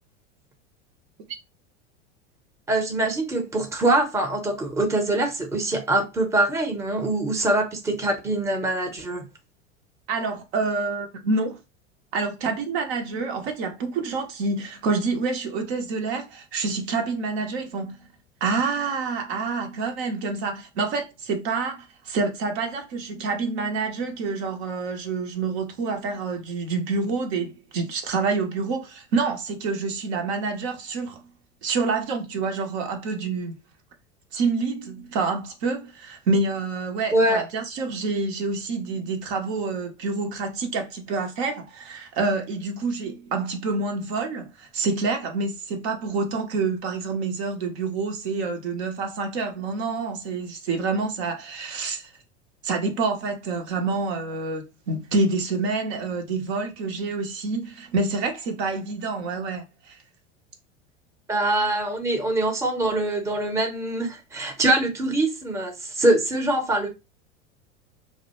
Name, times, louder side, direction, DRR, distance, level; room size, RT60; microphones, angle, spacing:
voice 1, 2.7-9.3 37.1-37.4 61.3-66.9, right 2 dB, 10° right, 0.7 m, -23 dB
voice 2, 10.1-11.6 12.1-18.0 18.4-31.2 31.6-33.6 34.3-52.1 52.6-60.0, right 4 dB, 60° right, 0.7 m, -27 dB
2.1 x 2.0 x 2.9 m
hypercardioid pair, 85°, 36 cm